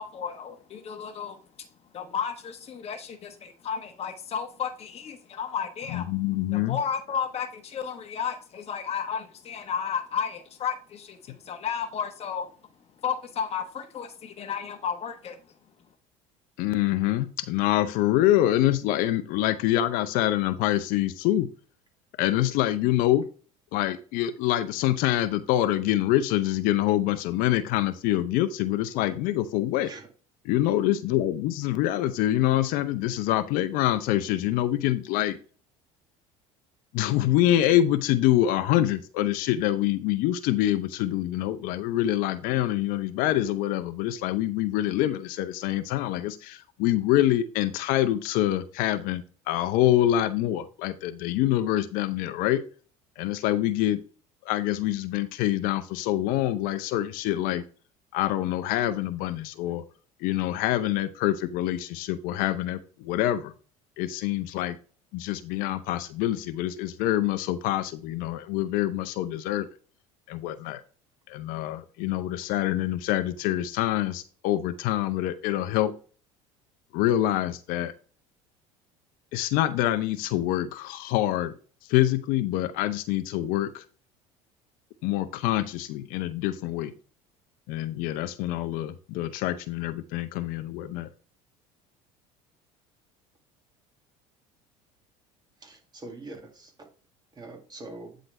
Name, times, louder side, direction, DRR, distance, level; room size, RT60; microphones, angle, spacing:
voice 1, 0.0-1.7 1.9-6.1 6.5-12.5 13.0-15.5, left 7 dB, 40° left, 7 dB, 1.1 m, -33 dB
voice 2, 5.9-6.8 16.6-21.5 22.2-23.2 23.7-29.9 30.5-35.4 36.9-52.6 53.2-54.0 54.4-57.6 58.1-59.8 60.2-63.5 64.0-64.8 65.1-69.7 70.3-70.8 71.3-75.9 76.9-77.9 79.3-81.6 81.9-83.8 85.0-86.9 87.7-91.1, left 13 dB, 70° left, 11 dB, 0.7 m, -25 dB
voice 3, 95.6-96.9 97.4-98.2, right 2 dB, 25° right, 2 dB, 2.1 m, -43 dB
9.1 x 3.9 x 3.2 m, 0.38 s
supercardioid pair, 90°, 15 cm